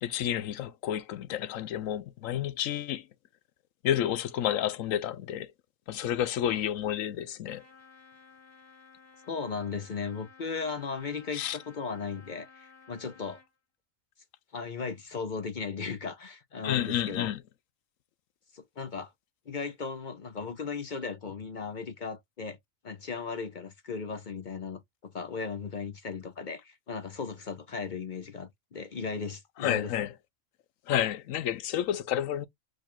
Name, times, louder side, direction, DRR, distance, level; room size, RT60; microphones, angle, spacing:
voice 1, 0.0-3.1 3.8-5.5 5.9-7.6 11.3-11.6 16.6-17.4 29.6-30.1 30.9-32.5, left 11 dB, 80° left, 1.1 m, -30 dB
Trumpet, 7.5-13.5, left 5 dB, 20° left, 1.2 m, -55 dB
voice 2, 9.3-13.4 14.5-17.3 18.5-19.1 19.5-22.6 22.8-29.9, left 5 dB, 45° left, 0.7 m, -36 dB
5.0 x 2.3 x 4.2 m
omnidirectional pair, 1.4 m